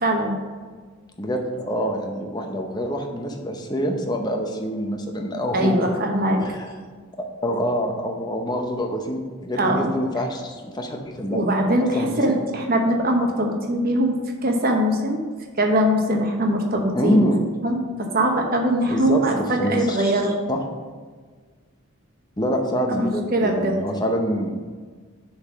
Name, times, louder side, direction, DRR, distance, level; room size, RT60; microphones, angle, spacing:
voice 1, 0.0-0.4 5.5-6.4 9.6-9.9 11.3-14.2 14.4-15.2 15.6-17.2 17.6-20.4 22.9-23.7, right 1 dB, 45° right, 2 dB, 0.9 m, -21 dB
voice 2, 1.2-6.1 6.4-6.7 7.4-11.4 11.8-12.2 16.9-17.4 18.9-20.1 20.5-20.6 22.4-24.6, equal, 20° left, 3 dB, 0.7 m, -26 dB
7.0 x 3.9 x 6.1 m, 1.5 s
head